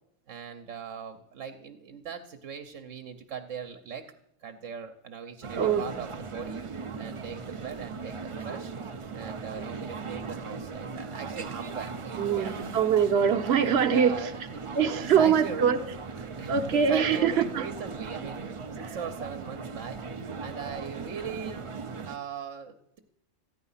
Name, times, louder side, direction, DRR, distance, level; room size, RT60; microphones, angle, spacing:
voice 1, 0.3-4.1 4.4-6.6 7.0-8.7 9.1-12.7 13.9-15.7 16.4-18.4 18.7-20.0 20.4-21.6 22.0-23.0, right 7 dB, 80° right, 7 dB, 1.2 m, -40 dB
sound 1, 5.4-22.2, right 4 dB, 35° right, 0.5 m, -38 dB
voice 2, 12.2-14.1 14.7-15.8 16.2-17.7, right 7 dB, 60° right, 8 dB, 1.1 m, -23 dB
14.0 x 9.9 x 5.6 m, 0.79 s
omnidirectional pair, 1.3 m